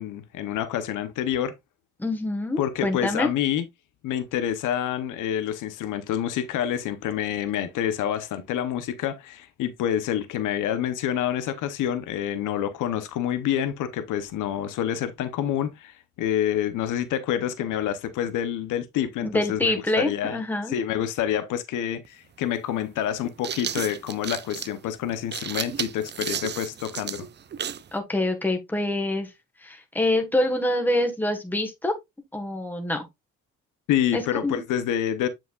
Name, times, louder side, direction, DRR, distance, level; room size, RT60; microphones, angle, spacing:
voice 1, 0.0-1.5 2.6-3.6 4.0-20.4 20.7-27.3 33.9-35.3, left 10 dB, 85° left, 0.9 m, -27 dB
voice 2, 2.0-3.3 19.2-20.7 26.5-26.6 27.9-29.3 29.6-31.9 32.3-33.1 34.1-34.6, left 1 dB, 5° left, 1.4 m, -26 dB
sound 1, 22.0-22.1 23.1-27.9, right 8 dB, 35° right, 0.5 m, -33 dB
7.2 x 5.9 x 2.4 m
cardioid pair, 90°, 30 cm